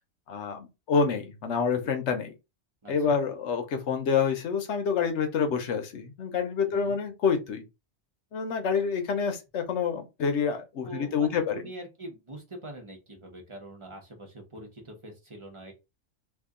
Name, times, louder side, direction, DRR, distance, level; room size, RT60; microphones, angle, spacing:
voice 1, 0.3-2.3 2.9-7.6 8.3-11.6, left 6 dB, 65° left, 1.0 m, -27 dB
voice 2, 2.8-3.2 6.7-7.0 10.8-15.7, right 1 dB, 25° right, 1.0 m, -43 dB
2.7 x 2.6 x 3.6 m
omnidirectional pair, 1.4 m